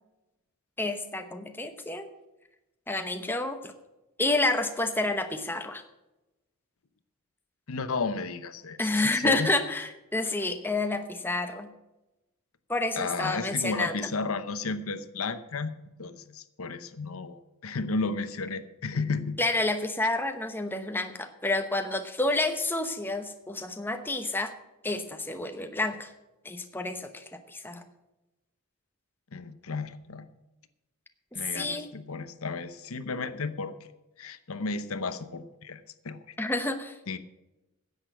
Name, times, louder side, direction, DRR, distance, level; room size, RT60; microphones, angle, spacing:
voice 1, 0.8-2.1 2.9-3.7 4.2-5.8 8.8-11.7 12.7-14.1 19.4-24.5 24.8-26.1 26.4-27.8 31.5-31.9 36.4-37.0, left 2 dB, 10° left, 7 dB, 0.9 m, -29 dB
voice 2, 7.7-9.5 13.0-15.7 16.0-19.4 29.3-30.3 31.3-33.7 34.2-36.2 37.1-37.2, left 4 dB, 75° left, 12 dB, 0.8 m, -33 dB
10.5 x 8.2 x 8.0 m, 0.98 s
head